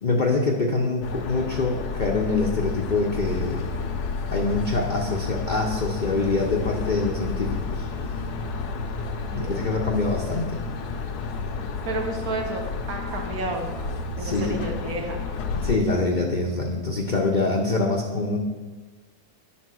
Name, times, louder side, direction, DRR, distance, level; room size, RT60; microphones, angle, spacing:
voice 1, 0.0-3.7 4.3-7.9 9.3-10.7 14.2-14.6 15.5-18.4, left 3 dB, 45° left, -1 dB, 0.6 m, -25 dB
sound 1, 1.0-15.8, left 4 dB, 75° left, 1.3 m, -31 dB
voice 2, 9.3-9.7 11.9-12.6 12.9-13.7 14.2-15.2, right 2 dB, 60° right, 2 dB, 1.7 m, -31 dB
10.0 x 4.3 x 6.1 m, 1.3 s
omnidirectional pair, 1.8 m